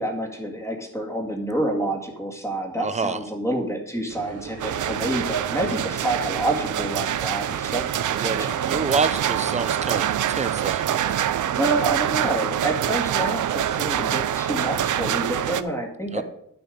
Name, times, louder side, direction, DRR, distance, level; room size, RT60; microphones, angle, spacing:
voice 1, 0.0-8.7 11.6-16.2, right 1 dB, 10° left, 1 dB, 2.0 m, -28 dB
voice 2, 2.8-3.2 8.2-11.0 16.1-16.2, right 4 dB, 20° right, 12 dB, 0.5 m, -28 dB
sound 1, 4.1-11.9, right 6 dB, 45° right, 0.9 m, -38 dB
sound 2, 4.6-15.6, right 10 dB, 65° right, 0.6 m, -25 dB
11.0 x 6.9 x 5.1 m, 0.74 s
wide cardioid pair, 150°, 33 cm